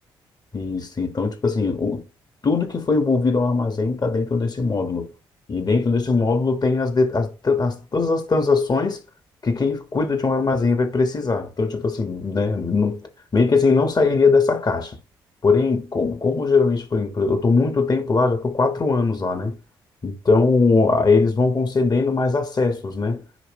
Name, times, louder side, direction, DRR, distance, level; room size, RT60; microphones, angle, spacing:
voice 1, 0.5-2.0 2.4-5.1 5.5-9.0 9.4-13.0 13.3-15.0 15.4-19.6 20.0-23.2, left 4 dB, 35° left, 1.7 m, -20 dB
10.0 x 3.4 x 3.2 m
hypercardioid pair, 45°, 11 cm